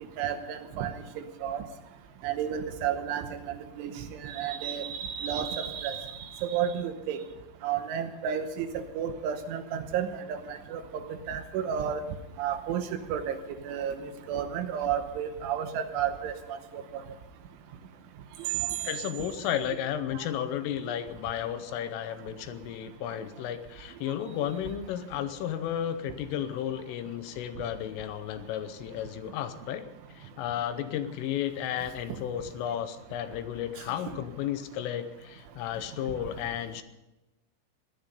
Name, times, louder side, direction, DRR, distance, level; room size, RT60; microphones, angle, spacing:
voice 1, 0.2-0.9 1.4-1.6 2.2-3.9 4.2-6.1 6.4-7.2 7.6-10.8 11.3-12.0 12.4-13.4 13.6-16.3 16.7-17.0 18.8-18.9 20.1-20.3, right 8 dB, 75° right, 8 dB, 3.2 m, -32 dB
voice 2, 18.8-29.9 30.1-36.8, left 10 dB, 80° left, 10 dB, 3.3 m, -33 dB
18.0 x 12.0 x 5.2 m, 1.0 s
omnidirectional pair, 6.0 m